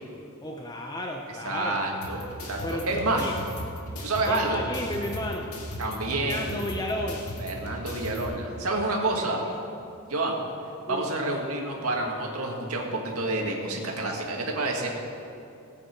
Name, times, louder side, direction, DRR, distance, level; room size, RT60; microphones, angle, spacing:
voice 1, 0.4-1.8 2.6-3.4 4.3-5.5 6.1-7.3 10.9-11.1, left 1 dB, 20° left, 1 dB, 0.7 m, -33 dB
voice 2, 1.4-3.2 4.0-4.6 5.8-6.5 7.4-9.5 10.0-10.4 10.9-14.9, right 2 dB, 85° right, 0 dB, 1.9 m, -28 dB
sound 1, 2.0-8.2, equal, 85° left, 1.8 m, -37 dB
17.5 x 8.4 x 4.6 m, 2.6 s
head